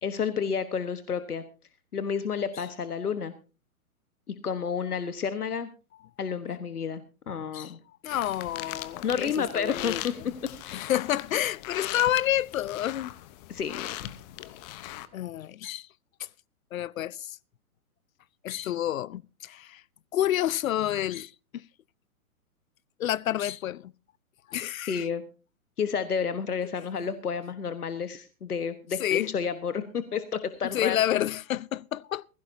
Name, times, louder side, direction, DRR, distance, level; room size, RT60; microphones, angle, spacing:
voice 1, 0.0-1.4 1.9-3.3 4.3-5.7 6.2-7.8 9.0-10.1 10.6-10.9 13.5-13.9 24.9-25.2 25.8-31.0, left 6 dB, 80° left, 1.4 m, -30 dB
voice 2, 8.0-10.0 10.7-13.1 15.1-15.9 16.2-16.3 16.7-17.4 18.4-19.8 20.1-21.6 23.0-23.9 24.5-25.0 29.0-29.3 30.7-32.3, left 12 dB, 65° left, 0.6 m, -29 dB
sound 1, 8.1-15.1, left 15 dB, 30° left, 0.9 m, -40 dB
20.5 x 16.0 x 2.7 m
hypercardioid pair, 125°, 44 cm